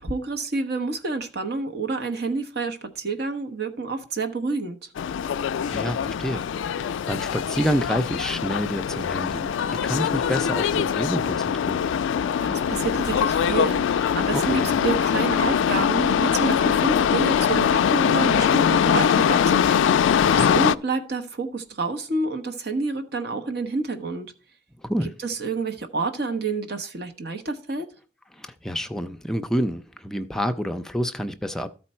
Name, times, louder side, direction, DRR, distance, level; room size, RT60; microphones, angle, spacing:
voice 1, 0.0-4.9 12.2-24.3 25.2-27.9, right 3 dB, 60° right, 0.9 m, -28 dB
sound 1, 5.0-20.7, left 8 dB, 85° left, 0.3 m, -22 dB
voice 2, 5.7-6.4 7.1-11.9 14.3-14.8 20.2-20.6 24.8-25.1 28.4-31.7, equal, 5° left, 0.4 m, -28 dB
13.0 x 4.5 x 4.2 m
head